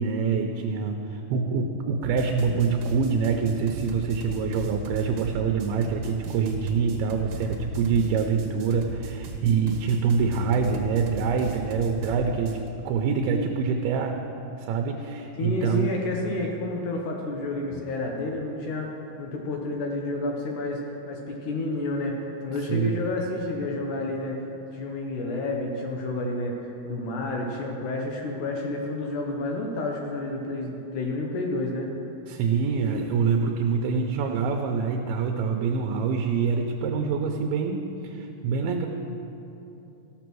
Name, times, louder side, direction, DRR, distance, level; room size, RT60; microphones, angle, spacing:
voice 1, 0.0-14.2 14.6-15.9 17.7-17.8 22.7-23.0 32.3-38.9, right 5 dB, 80° right, 3 dB, 2.5 m, -25 dB
sound 1, 2.0-12.7, right 3 dB, 65° right, 2.2 m, -36 dB
voice 2, 15.4-18.9 19.2-20.8 21.1-24.4 24.7-26.6 26.9-31.9, left 2 dB, 70° left, 0 dB, 2.0 m, -30 dB
15.0 x 6.9 x 6.1 m, 2.9 s
omnidirectional pair, 4.5 m